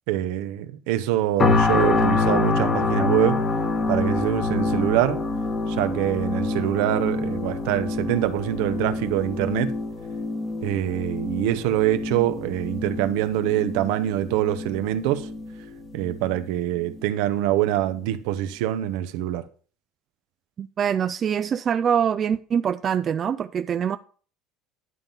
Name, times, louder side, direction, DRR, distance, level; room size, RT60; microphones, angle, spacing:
voice 1, 0.1-3.4 3.9-5.2 5.7-9.7 10.6-15.3 15.9-19.4, right 13 dB, 75° right, 0.9 m, -24 dB
sound 1, 1.4-16.4 16.9-17.1, left 3 dB, 30° left, 1.3 m, -26 dB
voice 2, 20.6-24.0, right 8 dB, 35° right, 0.4 m, -24 dB
11.0 x 3.8 x 7.1 m
supercardioid pair, 110°, 0 cm